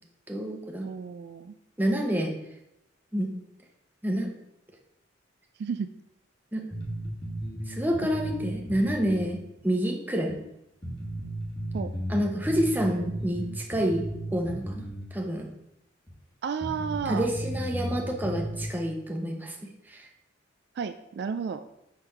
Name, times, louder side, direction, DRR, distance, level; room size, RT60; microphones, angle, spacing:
voice 1, 0.3-0.9 1.8-2.3 3.1-3.3 4.0-4.3 6.5-6.6 7.7-10.4 12.1-14.1 14.3-15.5 17.1-19.5 19.9-20.1, equal, 10° right, 1 dB, 0.8 m, -28 dB
voice 2, 0.8-1.5 5.6-5.9 8.0-8.1 11.7-11.9 16.4-17.3 20.8-21.6, right 6 dB, 55° right, 10 dB, 0.3 m, -32 dB
sound 1, 6.7-9.3 9.6-9.7 10.3-10.4 10.8-15.1 15.4-15.5 16.1-16.2 16.6-18.7, right 1 dB, 25° left, 1.3 m, -34 dB
6.4 x 3.5 x 5.7 m, 0.85 s
head